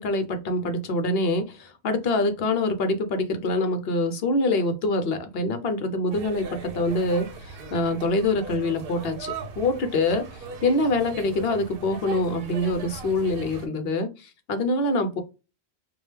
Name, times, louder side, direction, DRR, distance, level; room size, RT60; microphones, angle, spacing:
voice 1, 0.0-10.2 10.6-15.2, left 2 dB, 65° left, 7 dB, 1.0 m, -25 dB
sound 1, 6.1-13.7, right 4 dB, 60° right, 0.8 m, -39 dB
4.9 x 2.3 x 3.2 m, 0.29 s
omnidirectional pair, 1.1 m